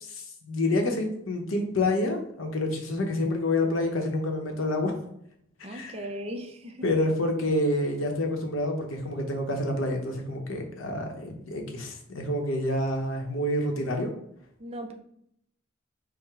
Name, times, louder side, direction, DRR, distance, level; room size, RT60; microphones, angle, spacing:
voice 1, 0.0-5.0 5.7-5.9 6.8-14.1, left 1 dB, 80° left, 3 dB, 0.8 m, -28 dB
voice 2, 5.6-6.8 14.6-14.9, equal, 30° right, 4 dB, 0.6 m, -37 dB
4.7 x 2.1 x 4.7 m, 0.72 s
head